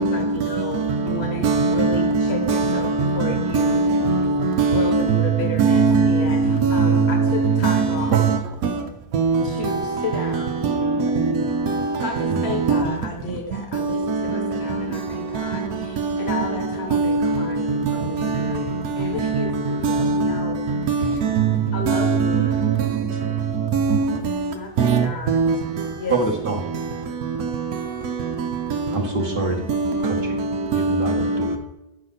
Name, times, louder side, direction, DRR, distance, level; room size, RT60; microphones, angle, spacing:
voice 1, 0.0-3.8 4.6-8.1 9.4-10.6 12.0-20.6 21.0-21.4 21.7-22.6 24.5-25.4 25.9-26.2, left 3 dB, 45° left, 1.6 m, -32 dB
voice 2, 1.4-2.8 3.2-5.0 5.6-6.2 6.6-7.1 7.6-7.8 8.1-8.2 9.1-9.4 10.8-11.0 12.7-12.8 16.9-17.3 19.8-20.3 20.9-21.0 21.3-21.5 21.9-22.1 23.7-24.0 24.8-25.5 29.7-30.1 30.7-31.1, right 4 dB, 70° right, 1.2 m, -19 dB
voice 3, 26.1-26.6 28.9-29.6 30.0-30.4 30.7-31.6, right 3 dB, 40° right, 1.1 m, -25 dB
9.7 x 6.3 x 4.0 m
omnidirectional pair, 1.6 m